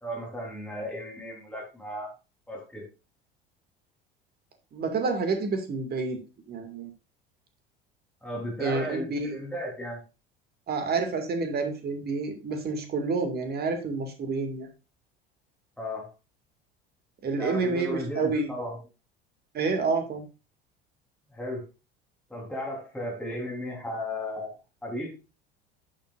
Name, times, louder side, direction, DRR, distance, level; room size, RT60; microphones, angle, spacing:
voice 1, 0.0-2.1 2.5-2.9 8.2-10.0 15.8-16.1 17.4-18.8 21.3-21.6 22.3-24.5 24.8-25.1, left 1 dB, 5° left, -2 dB, 3.8 m, -35 dB
voice 2, 4.7-6.2 6.5-6.9 8.6-9.4 10.7-14.7 17.2-18.5 19.5-20.2, right 4 dB, 35° right, 5 dB, 2.1 m, -29 dB
11.0 x 7.3 x 2.5 m, 0.31 s
figure-of-eight pair, 65°, 29 cm